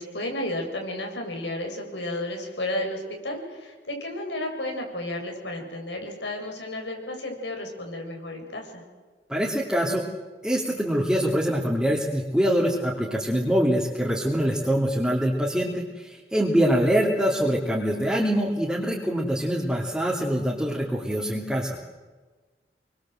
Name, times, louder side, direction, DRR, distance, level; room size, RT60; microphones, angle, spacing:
voice 1, 0.0-8.8, left 1 dB, 90° left, 2 dB, 7.3 m, -32 dB
voice 2, 9.3-10.0 10.4-21.8, equal, 5° right, -5 dB, 3.1 m, -24 dB
28.0 x 23.5 x 7.9 m, 1.3 s
head